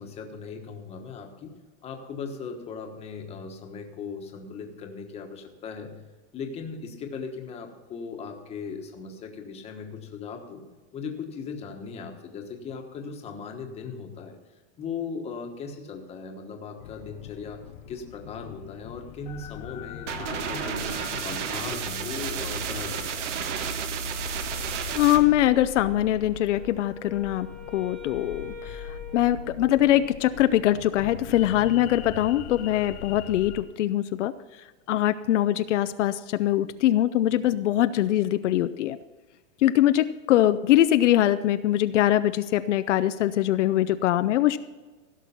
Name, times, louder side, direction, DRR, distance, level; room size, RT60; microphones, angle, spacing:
voice 1, 0.0-1.5 1.8-6.0 6.3-10.6 10.9-14.4 14.8-23.4, left 5 dB, 15° left, 4 dB, 1.2 m, -38 dB
sound 1, 16.8-33.6, left 9 dB, 35° left, 0.5 m, -42 dB
sound 2, 20.1-25.2, right 7 dB, 75° right, 1.5 m, -31 dB
voice 2, 24.9-39.0 39.6-44.6, left 13 dB, 75° left, 12 dB, 0.7 m, -23 dB
Wind instrument woodwind instrument, 26.5-30.4, left 4 dB, ahead, 1.1 m, -43 dB
16.0 x 6.2 x 5.7 m, 1.3 s
supercardioid pair, 165°, 36 cm